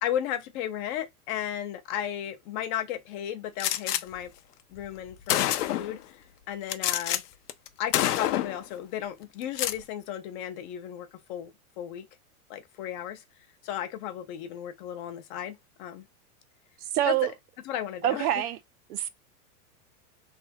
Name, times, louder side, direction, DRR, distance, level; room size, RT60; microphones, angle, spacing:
voice 1, 0.0-4.3 4.7-6.2 6.5-7.2 7.8-11.5 11.8-12.1 12.5-13.2 13.6-16.0 17.1-17.2 17.6-18.4, left 10 dB, 35° left, 0.5 m, -34 dB
Gunshot gunfire, 3.6-4.0 4.8-4.9 5.3-6.0 6.7-7.2 7.5-7.7 7.9-8.6 9.4-9.8, left 13 dB, 80° left, 0.6 m, -27 dB
voice 2, 16.9-17.3 18.0-18.6 18.9-19.1, right 13 dB, 75° right, 0.7 m, -25 dB
3.3 x 2.1 x 2.8 m
supercardioid pair, 135°, 45 cm